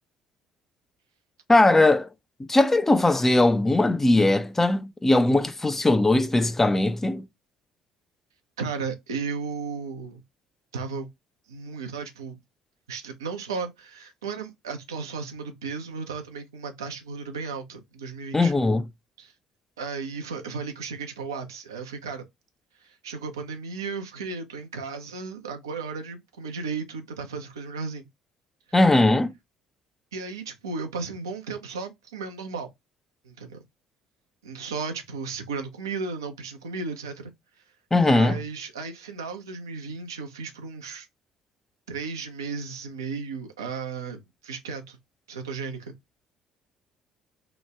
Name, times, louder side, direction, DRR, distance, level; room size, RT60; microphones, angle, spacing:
voice 1, 1.5-2.1 2.5-7.2 18.3-18.8 28.7-29.3 37.9-38.3, left 2 dB, 15° left, 0.4 m, -20 dB
voice 2, 8.6-10.2 10.7-11.1 11.5-12.4 12.9-18.5 19.2-19.3 19.8-22.2 22.8-28.1 30.1-32.7 33.2-33.6 34.4-37.3 38.0-41.1 41.9-45.0 45.3-45.9, right 4 dB, 80° right, 0.5 m, -34 dB
2.9 x 2.2 x 3.3 m
figure-of-eight pair, 55°, 2 cm